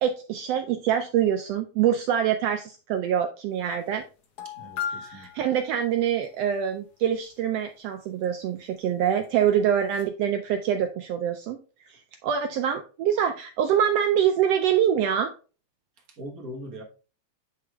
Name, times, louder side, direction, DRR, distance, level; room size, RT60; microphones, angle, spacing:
voice 1, 0.0-4.0 5.0-11.6 11.9-15.3, right 9 dB, 80° right, 1.4 m, -25 dB
sound 1, 3.6-3.7 4.0-4.1 4.4-6.3 9.2-9.3 9.8-10.0, left 8 dB, 70° left, 0.9 m, -37 dB
voice 2, 4.4-5.5 16.1-16.8, equal, 60° right, 0.9 m, -41 dB
9.3 x 3.7 x 3.3 m
omnidirectional pair, 3.4 m